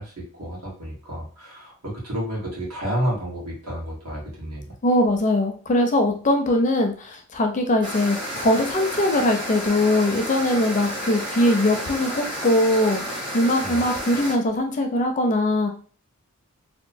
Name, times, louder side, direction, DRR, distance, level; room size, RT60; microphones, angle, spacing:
voice 1, 0.0-4.7 13.6-13.8, equal, 75° right, -4 dB, 1.4 m, -30 dB
voice 2, 4.8-15.7, left 1 dB, 35° left, 4 dB, 0.4 m, -21 dB
sound 1, 7.8-14.3, equal, 20° right, 0.7 m, -31 dB
2.9 x 2.1 x 2.7 m, 0.40 s
head